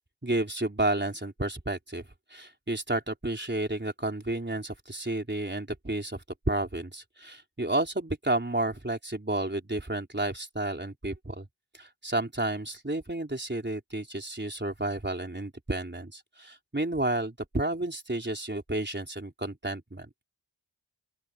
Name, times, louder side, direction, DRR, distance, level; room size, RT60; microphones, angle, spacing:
voice 1, 0.2-2.0 2.3-11.5 11.7-20.1, right 2 dB, 25° right, 4.1 m, -31 dB
open air
cardioid pair, 50°, 45 cm